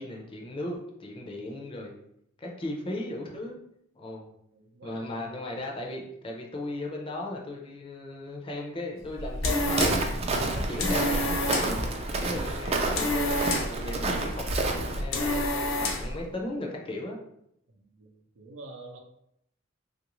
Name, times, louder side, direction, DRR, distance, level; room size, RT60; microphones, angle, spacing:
voice 1, 0.0-1.9 2.4-3.6 4.0-4.3 4.8-11.8 12.2-17.2, left 1 dB, 25° left, 0 dB, 0.5 m, -36 dB
voice 2, 4.5-5.2 17.7-19.0, right 2 dB, 80° right, 2 dB, 0.6 m, -47 dB
sound 1, 9.0-16.2, left 1 dB, 80° left, 0.6 m, -30 dB
Walk footsteps, 9.7-15.0, right 2 dB, 30° right, 0.4 m, -30 dB
3.3 x 2.5 x 3.0 m, 0.76 s
head